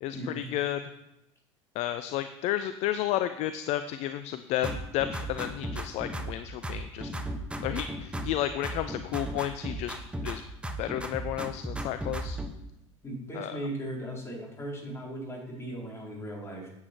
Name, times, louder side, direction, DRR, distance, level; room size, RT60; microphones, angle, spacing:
voice 1, 0.0-0.8 1.8-7.1 7.6-10.0 10.2-10.4 10.8-12.4 13.3-13.6, left 12 dB, 45° left, 11 dB, 0.5 m, -32 dB
sound 1, 4.6-6.4 6.6-8.4 8.6-10.4 10.6-12.5, right 1 dB, 5° right, 1.0 m, -35 dB
voice 2, 13.0-16.7, right 1 dB, 15° left, -2 dB, 4.2 m, -37 dB
9.6 x 8.4 x 4.6 m, 0.87 s
figure-of-eight pair, 75°, 16 cm